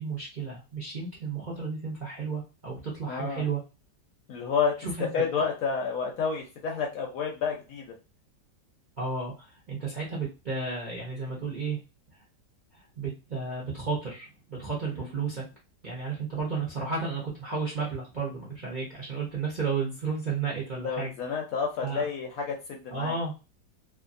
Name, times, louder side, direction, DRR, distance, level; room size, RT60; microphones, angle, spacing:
voice 1, 0.0-3.6 4.8-5.1 9.0-11.8 12.7-15.4 15.8-21.1 21.8-22.0 22.9-23.3, right 4 dB, 50° right, -5 dB, 0.6 m, -33 dB
voice 2, 3.1-3.5 4.3-4.8 5.1-7.9 15.3-15.5 20.7-23.2, left 5 dB, 70° left, 1 dB, 0.9 m, -30 dB
2.6 x 2.5 x 2.5 m, 0.29 s
omnidirectional pair, 1.9 m